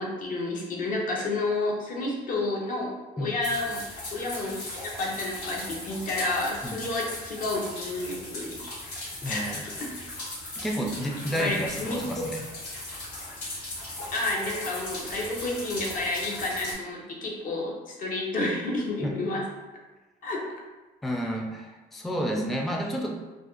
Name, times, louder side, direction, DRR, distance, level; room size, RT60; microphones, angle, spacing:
voice 1, 0.0-3.8 4.1-8.6 9.2-10.0 11.4-12.0 14.1-19.5 20.2-20.5, left 2 dB, 55° left, -1 dB, 0.8 m, -30 dB
sound 1, 3.4-16.7, left 1 dB, 75° left, 1.5 m, -38 dB
voice 2, 9.2-9.7 10.6-12.5 19.0-19.1 21.0-23.2, equal, ahead, 1 dB, 0.3 m, -30 dB
2.5 x 2.4 x 3.7 m, 1.2 s
cardioid pair, 110°, 17 cm